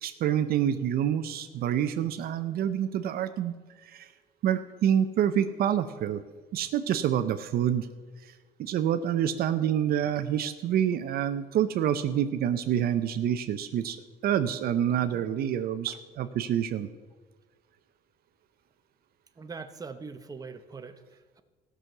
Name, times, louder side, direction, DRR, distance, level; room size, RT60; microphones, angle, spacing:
voice 1, 0.0-3.5 3.8-4.1 4.4-6.2 6.5-7.9 8.6-16.9, right 10 dB, 65° right, 10 dB, 0.6 m, -27 dB
voice 2, 19.4-21.4, right 4 dB, 20° right, 8 dB, 0.9 m, -42 dB
15.0 x 6.2 x 6.6 m, 1.3 s
cardioid pair, 110°, 17 cm